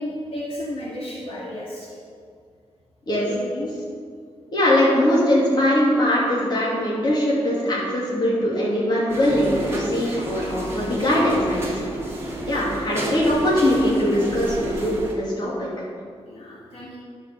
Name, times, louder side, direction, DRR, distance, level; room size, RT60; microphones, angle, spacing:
voice 1, 0.0-1.9 3.1-3.7 16.3-17.0, left 1 dB, 65° left, -7 dB, 2.2 m, -33 dB
voice 2, 4.5-11.9 12.5-15.7, left 1 dB, 40° left, -6 dB, 2.8 m, -21 dB
sound 1, 9.1-15.1, right 1 dB, 25° right, 1.8 m, -31 dB
11.0 x 5.8 x 6.9 m, 2.1 s
wide cardioid pair, 170°, 11 cm